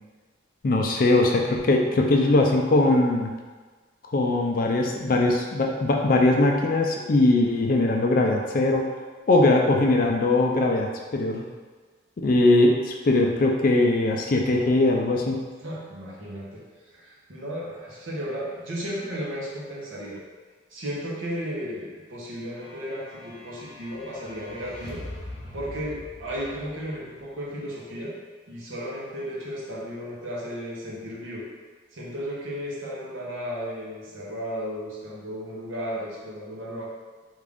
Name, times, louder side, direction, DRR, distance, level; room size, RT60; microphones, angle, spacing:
voice 1, 0.6-3.3 4.1-8.8 9.3-11.4 12.2-15.4, left 2 dB, 45° left, 1 dB, 0.4 m, -21 dB
voice 2, 15.6-16.6 16.9-20.2 20.7-25.0 25.5-28.1 28.5-31.5 31.9-36.8, equal, 90° right, -4 dB, 0.9 m, -34 dB
sound 1, 22.6-27.2, left 1 dB, 15° right, 1.3 m, -42 dB
3.6 x 2.5 x 3.4 m, 1.4 s
head